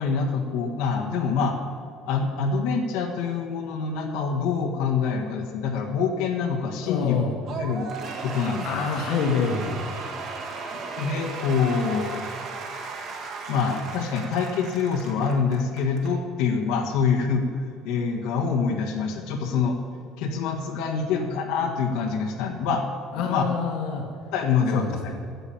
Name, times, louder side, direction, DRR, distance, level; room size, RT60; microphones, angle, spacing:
voice 1, 0.0-1.6 2.1-7.2 7.5-7.9 8.2-8.9 11.0-12.2 13.5-17.5 17.8-19.8 20.2-22.9 23.2-23.5 24.3-24.8, left 5 dB, 85° left, 1 dB, 1.5 m, -25 dB
voice 2, 6.8-7.4 8.6-9.8 23.1-24.1 24.7-25.1, left 5 dB, 65° left, 2 dB, 1.4 m, -26 dB
Cheering / Applause / Crowd, 7.5-16.1, right 4 dB, 45° right, 1.7 m, -36 dB
9.8 x 7.4 x 8.7 m, 2.3 s
cardioid pair, 160°, 0 cm